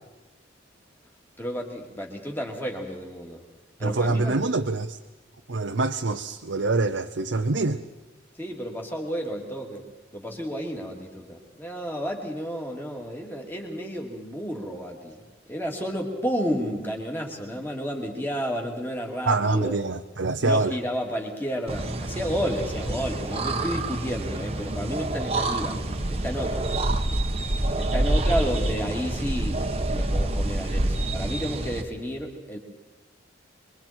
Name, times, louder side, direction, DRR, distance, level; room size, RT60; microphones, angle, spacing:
voice 1, 1.4-3.4 3.8-4.3 8.4-9.8 10.1-15.2 15.5-19.8 20.4-25.8 26.1-26.7 27.8-32.6, equal, 10° left, 0 dB, 2.8 m, -31 dB
voice 2, 3.8-5.0 5.5-7.8 19.3-20.7, right 3 dB, 70° right, 5 dB, 0.8 m, -25 dB
sound 1, 21.7-31.8, right 2 dB, 30° right, 1.1 m, -27 dB
26.5 x 23.0 x 4.5 m, 1.2 s
head